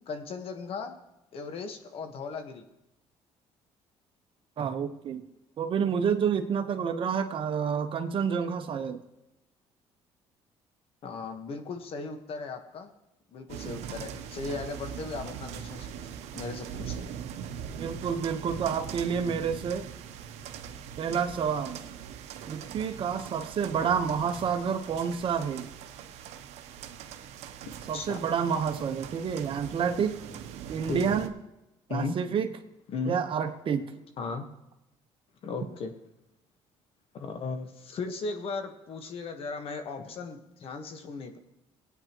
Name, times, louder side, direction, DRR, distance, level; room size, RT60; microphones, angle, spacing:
voice 1, 0.1-1.0 1.3-2.6 11.0-12.9 13.3-15.9 16.3-17.1 27.9-28.2 30.9-31.2 31.9-32.1 32.9-33.2 34.2-34.4 35.4-35.9 37.1-41.4, left 4 dB, 55° left, 6 dB, 1.3 m, -36 dB
voice 2, 4.6-5.2 5.6-9.0 17.8-19.9 21.0-21.8 22.5-25.7 27.9-30.2 30.7-31.3 31.9-32.5 33.0-33.9, right 7 dB, 50° right, 8 dB, 1.0 m, -29 dB
sound 1, 13.5-31.3, right 8 dB, 80° right, 0.8 m, -41 dB
19.0 x 9.1 x 3.0 m, 0.91 s
cardioid pair, 105°, 11 cm